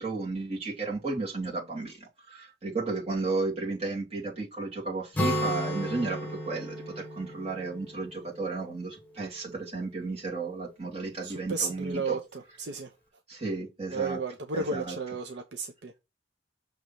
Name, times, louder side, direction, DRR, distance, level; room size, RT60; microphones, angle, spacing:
voice 1, 0.0-12.2 13.3-14.2 14.5-14.9, right 3 dB, 35° right, 2.5 m, -33 dB
Acoustic guitar, 5.1-8.9, equal, 10° left, 1.6 m, -33 dB
voice 2, 11.2-12.9 13.9-16.0, right 4 dB, 65° right, 0.7 m, -33 dB
6.3 x 3.5 x 5.5 m
head